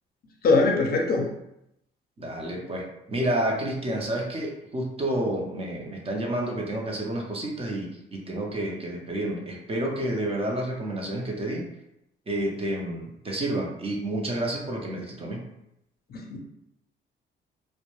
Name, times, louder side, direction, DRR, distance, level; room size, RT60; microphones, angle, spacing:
voice 1, 0.4-1.3 16.1-16.4, left 3 dB, 50° left, 0 dB, 0.6 m, -22 dB
voice 2, 2.2-11.6 12.3-15.4, right 1 dB, 30° right, -1 dB, 0.6 m, -30 dB
2.2 x 2.0 x 3.0 m, 0.82 s
cardioid pair, 90°, 20 cm